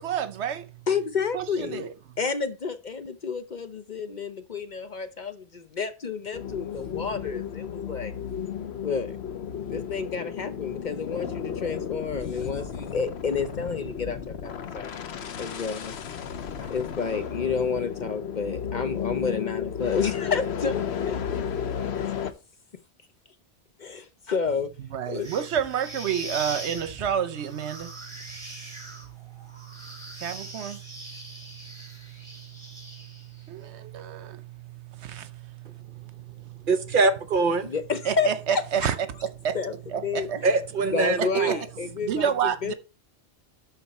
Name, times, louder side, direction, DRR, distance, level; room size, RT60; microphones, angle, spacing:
voice 1, 0.0-0.8 1.3-1.9 24.9-36.7 38.0-38.9 39.2-39.6 39.9-40.4 41.2-41.6 42.0-42.7, right 8 dB, 75° right, 1.0 m, -31 dB
voice 2, 0.9-1.9 2.2-8.1 8.8-9.2 9.7-15.0 15.4-15.9 16.6-21.4 21.8-22.3 23.8-24.7 25.1-25.3 37.6-38.9 39.5-40.4 40.9-42.3 42.6-42.7, left 5 dB, 45° left, 0.7 m, -30 dB
sound 1, 6.3-22.3, left 8 dB, 70° left, 1.0 m, -33 dB
sound 2, 25.1-33.4, right 1 dB, 25° right, 2.9 m, -41 dB
voice 3, 36.7-37.7 40.4-41.6, right 4 dB, 50° right, 0.9 m, -23 dB
12.0 x 4.1 x 4.2 m
omnidirectional pair, 1.2 m